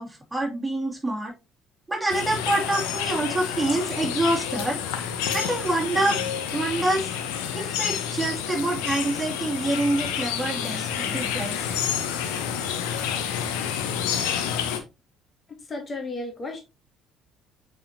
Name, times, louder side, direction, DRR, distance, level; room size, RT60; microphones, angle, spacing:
voice 1, 0.0-1.3 1.9-4.8 5.3-6.2 6.5-7.1 7.5-11.7, right 2 dB, 15° right, -1 dB, 2.7 m, -26 dB
sound 1, 2.1-14.8, left 8 dB, 75° left, 0.9 m, -29 dB
voice 2, 15.7-16.6, left 2 dB, 35° left, 3 dB, 2.2 m, -33 dB
8.5 x 4.6 x 2.8 m, 0.26 s
hypercardioid pair, 55°, 0 cm